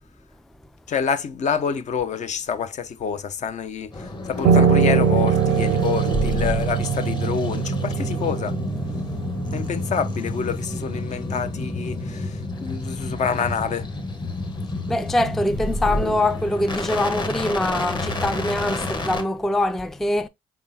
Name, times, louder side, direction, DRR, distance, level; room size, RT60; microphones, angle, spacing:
voice 1, 0.9-8.5 9.5-13.9, left 6 dB, 50° left, 0.7 m, -27 dB
sound 1, 3.9-19.2, left 2 dB, 30° left, 1.2 m, -29 dB
Piano, 4.4-9.7, right 7 dB, 80° right, 0.5 m, -21 dB
voice 2, 14.9-20.3, left 1 dB, ahead, 0.3 m, -23 dB
4.7 x 3.7 x 2.7 m
supercardioid pair, 65°, 16 cm